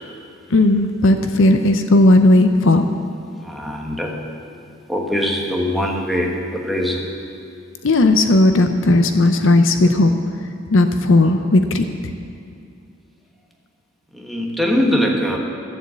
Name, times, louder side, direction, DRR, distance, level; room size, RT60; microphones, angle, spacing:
voice 1, 0.5-2.9 7.8-10.1 10.7-11.9, left 2 dB, 65° left, 7 dB, 0.7 m, -15 dB
voice 2, 3.4-4.2 4.9-7.1 14.1-15.4, equal, ahead, 0 dB, 1.3 m, -22 dB
13.5 x 7.2 x 7.5 m, 2.4 s
head